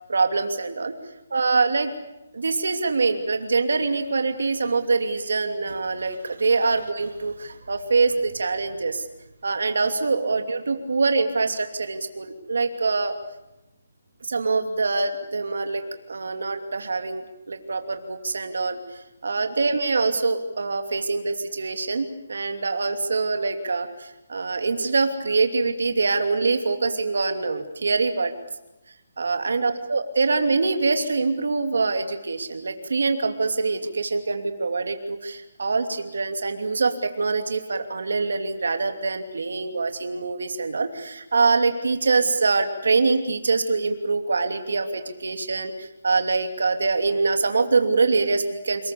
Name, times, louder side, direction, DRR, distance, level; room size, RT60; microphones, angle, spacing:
voice 1, 0.1-0.9 1.3-1.9 2.3-9.1 9.4-13.2 14.2-18.8 19.2-28.3 29.2-48.9, right 4 dB, 80° right, 6 dB, 2.8 m, -24 dB
29.0 x 21.0 x 7.0 m, 0.96 s
hypercardioid pair, 175°, 0 cm